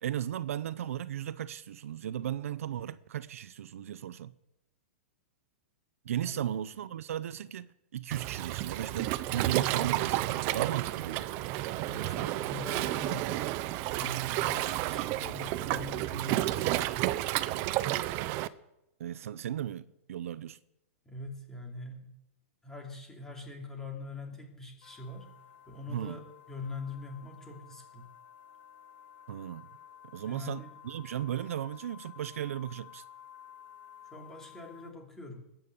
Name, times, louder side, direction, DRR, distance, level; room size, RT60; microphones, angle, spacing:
voice 1, 0.0-4.3 6.0-11.3 19.0-20.6 25.9-26.2 29.3-29.7 30.0-33.0, right 11 dB, 70° right, 0.7 m, -36 dB
Waves surf, 8.1-18.5, right 16 dB, 30° right, 0.6 m, -31 dB
voice 2, 11.8-13.4 13.9-16.8 21.0-22.1 22.6-25.3 25.7-28.1 30.2-30.7 34.1-35.5, left 2 dB, 5° left, 2.8 m, -43 dB
sound 1, 24.8-34.9, left 9 dB, 55° left, 7.0 m, -53 dB
20.0 x 9.0 x 6.9 m
hypercardioid pair, 165°, 8 cm